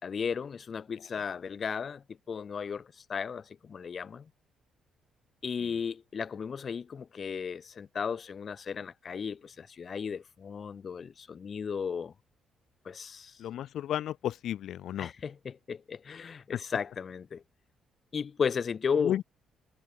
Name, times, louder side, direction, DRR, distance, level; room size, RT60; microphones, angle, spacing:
voice 1, 0.0-4.2 5.4-12.1 12.8-13.4 15.0-17.4 18.1-19.2, left 6 dB, 45° left, 1.2 m, -35 dB
voice 2, 13.4-15.1 19.0-19.2, left 11 dB, 75° left, 1.5 m, -32 dB
cardioid pair, 90°, 0 cm